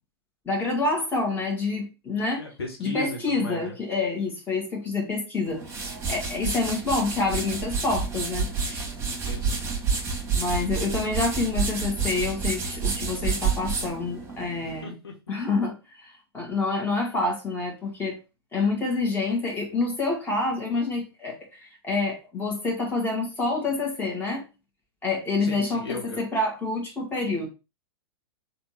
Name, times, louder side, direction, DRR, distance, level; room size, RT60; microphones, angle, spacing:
voice 1, 0.4-2.4 2.8-8.9 10.3-14.9 15.3-18.2 18.5-24.4 25.0-27.5, left 3 dB, 15° left, -2 dB, 1.8 m, -27 dB
voice 2, 2.4-3.7 9.2-9.6 14.8-15.1 25.4-26.2, left 2 dB, 75° left, -1 dB, 1.3 m, -36 dB
sound 1, 5.4-14.8, right 5 dB, 20° right, 1.6 m, -29 dB
3.5 x 2.8 x 4.4 m, 0.28 s
figure-of-eight pair, 100°, 13 cm